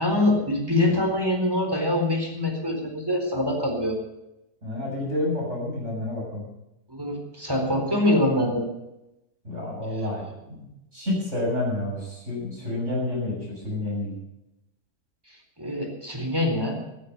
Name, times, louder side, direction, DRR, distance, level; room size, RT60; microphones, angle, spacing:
voice 1, 0.0-4.0 6.9-8.7 15.3-16.8, left 1 dB, 15° right, 2 dB, 4.1 m, -24 dB
voice 2, 4.6-6.4 9.4-14.1, left 1 dB, 45° right, -4 dB, 7.5 m, -29 dB
15.0 x 14.0 x 5.6 m, 0.89 s
omnidirectional pair, 1.7 m